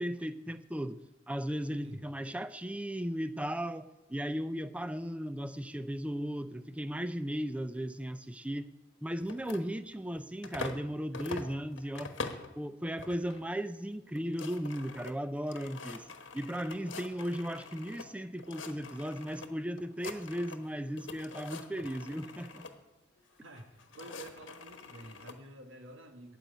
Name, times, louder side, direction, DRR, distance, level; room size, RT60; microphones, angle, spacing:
voice 1, 0.0-8.7 9.0-12.1 12.6-16.1 16.3-22.7, equal, 5° right, 0.4 m, -36 dB
sound 1, 9.2-10.9 11.1-12.5 13.0-13.4 13.7-13.8 14.1-18.1 18.4-19.5 19.8-20.7 21.0-22.7 23.5-25.4, left 4 dB, 70° left, 1.2 m, -45 dB
voice 2, 23.4-26.4, right 1 dB, 80° right, 1.5 m, -50 dB
9.3 x 7.5 x 9.2 m
head